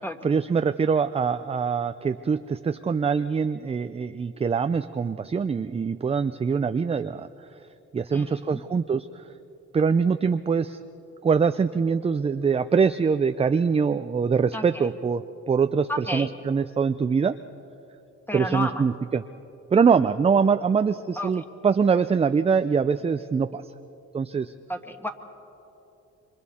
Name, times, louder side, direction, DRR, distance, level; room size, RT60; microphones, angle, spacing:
voice 1, 0.2-7.3 7.9-9.2 9.7-10.8 11.2-17.3 18.3-19.2 19.7-23.6 24.1-24.5, right 5 dB, 20° right, 10 dB, 0.4 m, -23 dB
voice 2, 8.1-8.6 14.5-14.9 15.9-16.3 18.3-18.8 21.2-21.4 24.7-25.1, left 1 dB, 5° left, 5 dB, 1.6 m, -32 dB
28.5 x 24.5 x 4.3 m, 2.9 s
cardioid pair, 90°, 30 cm